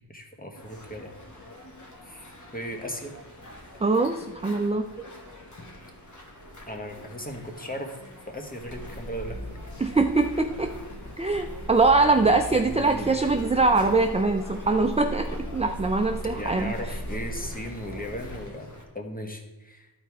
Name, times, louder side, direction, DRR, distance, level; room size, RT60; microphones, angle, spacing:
voice 1, 0.1-1.1 1.4-1.5 2.0-2.3 2.5-3.1 6.7-8.0 8.3-9.5 12.5-13.2 16.3-19.9, equal, 20° left, 3 dB, 1.3 m, -37 dB
sound 1, 0.5-18.8, left 1 dB, 45° left, 1.5 m, -45 dB
voice 2, 3.8-4.9 9.8-10.7 11.2-16.7, right 3 dB, 15° right, 6 dB, 0.4 m, -23 dB
sound 2, 8.5-18.4, left 1 dB, 65° left, 1.7 m, -38 dB
12.0 x 4.3 x 4.7 m, 1.1 s
wide cardioid pair, 70°, 42 cm